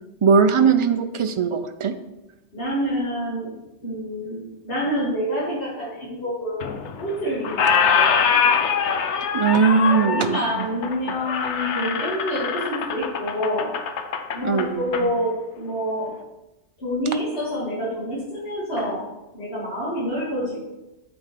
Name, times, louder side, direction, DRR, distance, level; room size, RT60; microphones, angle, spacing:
voice 1, 0.2-1.9 9.3-10.3 14.4-14.7, right 6 dB, 50° right, 8 dB, 0.3 m, -19 dB
voice 2, 2.5-3.5 3.8-6.7 7.0-8.6 10.0-13.7 14.3-16.1 16.8-19.0 19.3-20.7, equal, 60° left, -10 dB, 2.2 m, -27 dB
Squeak, 6.6-7.2 7.4-15.0, left 6 dB, 85° left, 1.0 m, -23 dB
8.2 x 3.5 x 5.7 m, 0.98 s
omnidirectional pair, 1.1 m